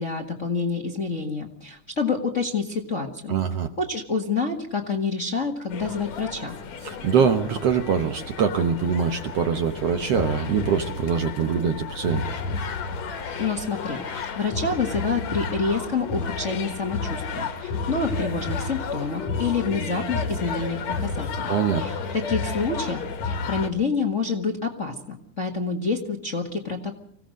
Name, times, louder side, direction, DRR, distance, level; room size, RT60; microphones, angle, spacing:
voice 1, 0.0-3.3 3.8-6.5 13.4-21.5 21.8-27.0, left 4 dB, 35° left, 2 dB, 1.4 m, -28 dB
voice 2, 3.3-3.7 6.8-12.2 21.5-21.8, right 6 dB, 65° right, 7 dB, 1.7 m, -23 dB
sound 1, 5.7-23.7, left 4 dB, 60° left, 2.8 m, -31 dB
25.5 x 17.0 x 6.4 m, 0.63 s
omnidirectional pair, 3.7 m